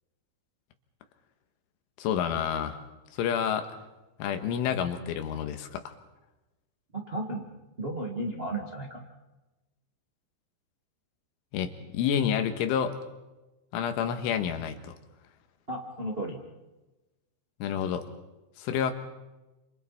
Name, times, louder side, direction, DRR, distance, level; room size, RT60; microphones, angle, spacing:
voice 1, 2.0-2.8 3.2-3.7 4.2-5.9 11.5-12.9 13.7-15.0 17.6-18.1 18.6-18.9, left 8 dB, 85° left, 6 dB, 3.9 m, -29 dB
voice 2, 6.9-7.5 7.8-9.0 15.7-16.4, right 1 dB, 85° right, -1 dB, 0.5 m, -34 dB
29.5 x 28.0 x 4.3 m, 1.1 s
omnidirectional pair, 5.5 m